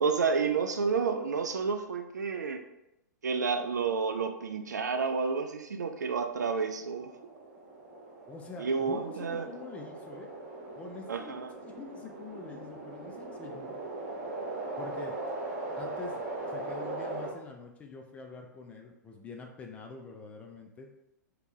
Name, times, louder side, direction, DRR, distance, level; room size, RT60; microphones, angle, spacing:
voice 1, 0.0-2.6 3.2-7.1 8.6-9.4 11.1-11.5, right 5 dB, 65° right, 6 dB, 0.4 m, -30 dB
sound 1, 6.5-17.3, right 2 dB, 40° right, 1.1 m, -40 dB
voice 2, 8.3-10.3 10.8-11.4 11.6-13.7 14.8-15.2 15.8-20.9, left 4 dB, 15° left, 2 dB, 0.4 m, -45 dB
3.2 x 2.9 x 3.0 m, 0.87 s
figure-of-eight pair, 105°, 10 cm